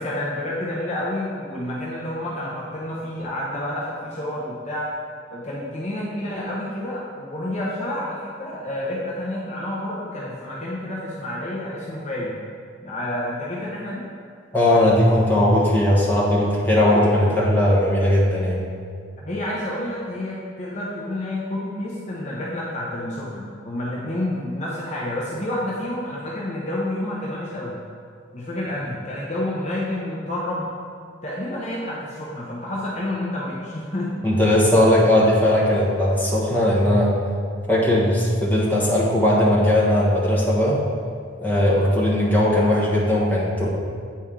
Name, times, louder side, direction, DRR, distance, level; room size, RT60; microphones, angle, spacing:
voice 1, 0.0-4.9 5.3-12.4 12.8-14.0 19.2-27.7 28.3-30.7 31.2-34.1 35.8-35.9, left 1 dB, 35° left, -5 dB, 0.7 m, -29 dB
voice 2, 14.5-18.6 34.2-37.1 37.7-40.8 41.4-43.7, left 1 dB, 10° left, -6 dB, 1.1 m, -18 dB
8.3 x 4.3 x 3.7 m, 2.2 s
head